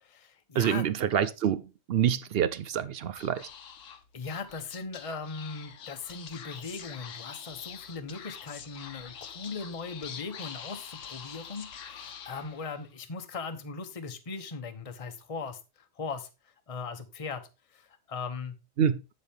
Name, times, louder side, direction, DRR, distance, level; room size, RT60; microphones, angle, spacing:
voice 1, 0.0-0.9 4.1-15.6 16.0-16.3 16.7-17.4 17.7-18.5, left 4 dB, 30° left, 0.9 m, -39 dB
voice 2, 0.5-3.5 18.8-19.0, right 9 dB, 60° right, 0.6 m, -27 dB
Speech / Whispering, 3.1-12.9, left 7 dB, 70° left, 1.2 m, -45 dB
8.3 x 7.3 x 3.5 m
omnidirectional pair, 1.4 m